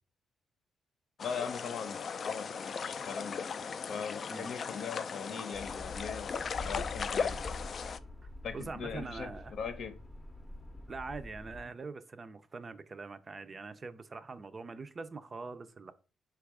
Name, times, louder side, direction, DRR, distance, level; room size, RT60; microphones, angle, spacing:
voice 1, 1.2-3.6 3.9-7.4 8.4-9.9, left 6 dB, 70° left, 0.7 m, -40 dB
sound 1, 1.2-8.0, left 5 dB, 50° left, 0.3 m, -37 dB
sound 2, 5.5-11.7, left 2 dB, 10° left, 0.6 m, -45 dB
voice 2, 8.5-9.5 10.9-15.9, right 4 dB, 35° right, 0.4 m, -43 dB
4.5 x 2.3 x 4.7 m
cardioid pair, 90°, 0 cm